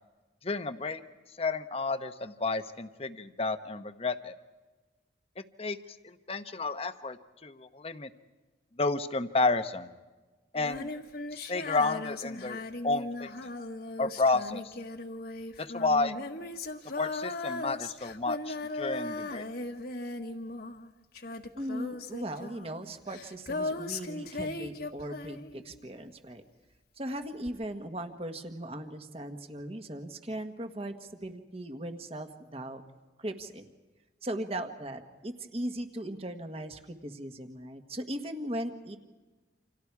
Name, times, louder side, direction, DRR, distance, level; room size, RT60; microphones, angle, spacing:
voice 1, 0.4-1.0 1.4-4.3 5.6-5.8 6.0-7.2 7.4-8.1 8.8-9.9 10.5-10.9 11.3-13.3 14.0-14.7 15.6-16.1 17.0-19.5, left 3 dB, 35° left, 10 dB, 1.0 m, -31 dB
Female singing, 10.5-25.9 27.5-27.6, left 2 dB, 55° left, 1.5 m, -38 dB
voice 2, 21.6-26.4 27.0-32.8 33.2-33.6 34.2-39.0, right 1 dB, 35° right, 7 dB, 1.5 m, -38 dB
29.0 x 27.0 x 4.8 m, 1.2 s
head